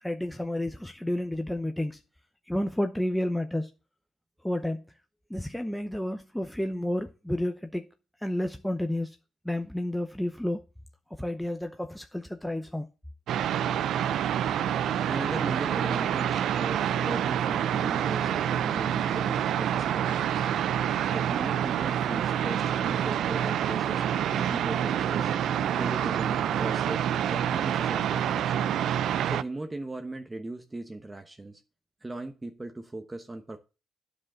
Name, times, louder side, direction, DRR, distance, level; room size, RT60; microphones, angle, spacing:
voice 1, 0.0-2.0 2.5-3.7 4.4-4.8 5.3-7.8 8.2-9.2 9.4-10.6 11.2-12.9, left 1 dB, 5° left, 0.8 m, -31 dB
sound 1, 13.3-29.4, right 10 dB, 75° right, 0.4 m, -27 dB
voice 2, 15.1-20.5 21.1-25.3 25.7-28.7 29.2-31.6 32.0-33.6, right 2 dB, 15° right, 1.0 m, -38 dB
9.5 x 5.2 x 7.3 m
cardioid pair, 90°, 0 cm